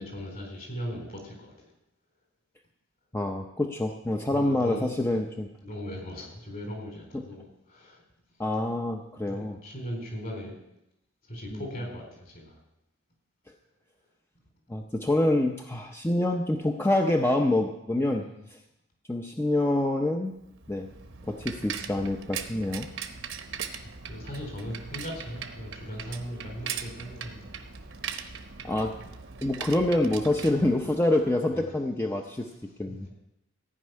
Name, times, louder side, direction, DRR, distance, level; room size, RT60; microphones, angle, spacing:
voice 1, 0.0-1.5 4.3-5.2 5.6-8.0 9.3-10.6 11.3-12.6 18.0-18.4 23.8-27.4 31.5-31.7 32.9-33.1, equal, 45° left, 0 dB, 4.4 m, -39 dB
voice 2, 3.1-5.5 7.1-7.2 8.4-9.6 11.5-11.6 14.7-18.2 18.5-18.6 19.1-20.4 20.7-20.9 21.3-22.9 28.6-29.0 29.4-32.5 32.8-33.1, left 1 dB, 10° left, 3 dB, 0.6 m, -26 dB
Bicycle, 20.4-31.3, right 6 dB, 65° right, 1.0 m, -40 dB
15.0 x 5.4 x 9.5 m, 0.87 s
head